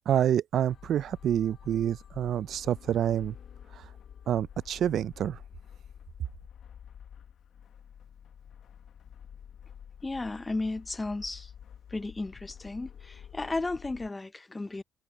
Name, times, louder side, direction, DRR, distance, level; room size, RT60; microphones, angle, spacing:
voice 1, 0.1-3.3 4.3-5.4, right 10 dB, 70° right, 0.4 m, -27 dB
sound 1, 0.7-14.1, left 8 dB, 65° left, 1.3 m, -49 dB
voice 2, 10.0-11.5 11.9-14.8, left 2 dB, 20° left, 0.7 m, -34 dB
cardioid pair, 90°, 0 cm